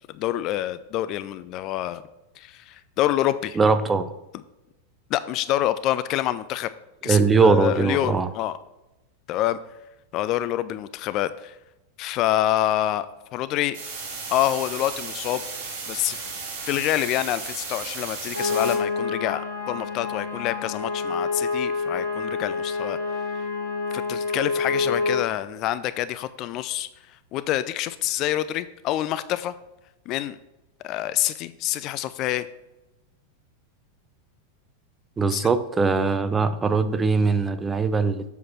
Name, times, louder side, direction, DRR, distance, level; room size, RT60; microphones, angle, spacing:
voice 1, 0.1-2.0 2.4-3.6 5.1-6.7 7.0-8.6 9.3-9.6 10.1-11.6 12.0-13.8 14.3-15.4 15.9-16.2 16.6-23.0 23.9-26.9 27.3-29.5 30.1-30.4 30.8-32.5 35.3-35.5, left 13 dB, 40° left, 14 dB, 0.3 m, -26 dB
voice 2, 3.6-4.1 7.0-8.3 35.2-38.2, right 4 dB, 15° right, 10 dB, 0.5 m, -21 dB
sound 1, 13.7-18.7, right 4 dB, 45° right, 2.5 m, -35 dB
sound 2, 18.3-25.2, left 4 dB, 80° left, 1.9 m, -27 dB
7.5 x 5.9 x 4.4 m, 0.97 s
figure-of-eight pair, 90°, 0 cm